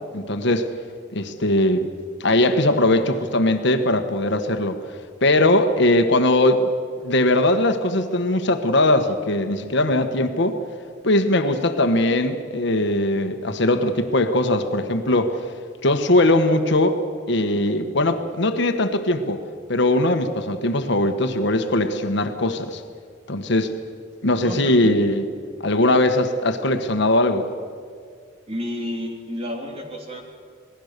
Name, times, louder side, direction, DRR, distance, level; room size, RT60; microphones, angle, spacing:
voice 1, 0.1-0.7 1.1-1.9 2.2-4.8 5.2-6.7 7.0-10.6 11.0-15.4 15.8-17.0 17.3-19.4 19.7-22.8 23.3-23.7 24.2-25.2 25.6-27.5, left 1 dB, 65° left, 8 dB, 1.3 m, -20 dB
voice 2, 24.4-25.0 28.5-30.2, equal, 30° right, 2 dB, 3.3 m, -30 dB
26.5 x 19.5 x 6.7 m, 2.2 s
head